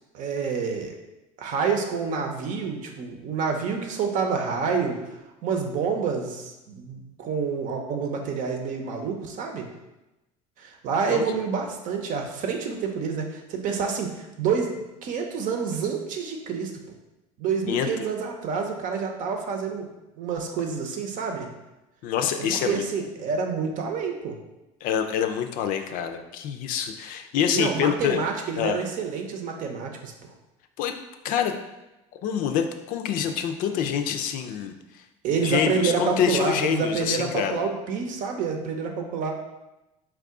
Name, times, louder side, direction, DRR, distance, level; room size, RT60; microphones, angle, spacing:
voice 1, 0.1-0.9 1.4-5.0 5.4-9.7 10.6-16.7 17.4-19.9 20.2-21.5 22.4-24.4 27.5-30.1 35.2-39.3, right 5 dB, 55° right, 3 dB, 0.8 m, -28 dB
voice 2, 17.7-18.1 22.0-22.8 24.8-28.3 28.6-28.8 30.8-30.9 31.2-31.5 32.2-35.0 35.3-37.6, left 8 dB, 60° left, 6 dB, 0.5 m, -26 dB
4.6 x 2.4 x 3.7 m, 1.0 s
supercardioid pair, 100°, 16 cm